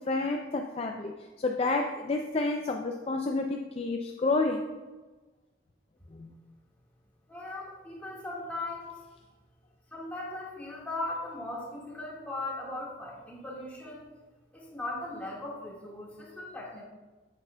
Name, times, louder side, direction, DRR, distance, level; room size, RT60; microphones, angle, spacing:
voice 1, 0.0-4.6 6.1-6.3, left 3 dB, 30° left, 3 dB, 0.3 m, -30 dB
voice 2, 7.3-9.0 9.9-14.0 14.5-16.8, left 2 dB, 10° left, -4 dB, 1.6 m, -38 dB
9.9 x 8.1 x 2.2 m, 1.2 s
head